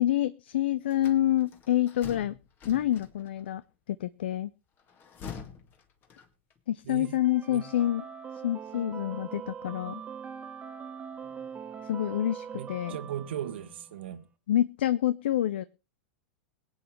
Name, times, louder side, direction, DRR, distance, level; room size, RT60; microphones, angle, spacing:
voice 1, 0.0-2.3 2.6-3.6 4.0-4.5 6.7-8.0 8.4-10.0 11.9-13.0 14.5-15.6, left 12 dB, 60° left, 0.6 m, -27 dB
sound 1, 0.9-3.5 4.8-6.6, left 6 dB, 30° left, 2.1 m, -46 dB
sound 2, 7.0-14.0, right 7 dB, 20° right, 1.6 m, -42 dB
voice 2, 12.5-14.2, right 10 dB, 60° right, 1.5 m, -37 dB
22.5 x 9.0 x 3.1 m
figure-of-eight pair, 95°, 7 cm